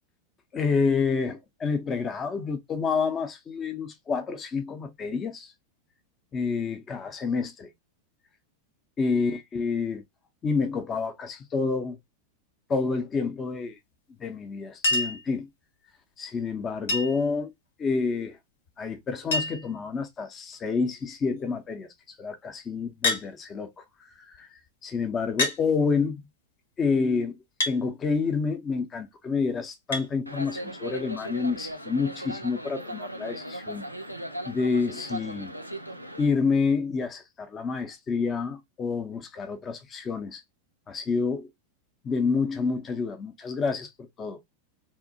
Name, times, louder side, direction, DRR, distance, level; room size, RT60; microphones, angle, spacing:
voice 1, 0.5-5.5 6.3-7.7 9.0-10.0 10.4-12.0 12.7-13.8 14.2-15.5 16.2-17.5 17.8-18.4 18.8-21.9 22.2-24.5 24.8-26.3 26.8-27.4 27.7-33.8 34.5-35.5 36.2-40.4 40.9-41.5 42.0-44.4, left 5 dB, 25° left, 0.5 m, -28 dB
Chink clink, 14.8-15.3 16.9-17.3 18.7-18.8 19.0-19.1 19.3-19.8 20.5-20.9 23.0-23.3 24.3-24.4 25.4-25.6 27.6-27.8 29.9-30.1 31.5-31.6, left 2 dB, 65° left, 0.8 m, -27 dB
sound 1, 30.3-36.3, right 1 dB, 90° right, 0.3 m, -38 dB
2.6 x 2.0 x 2.6 m
figure-of-eight pair, 90°, 0 cm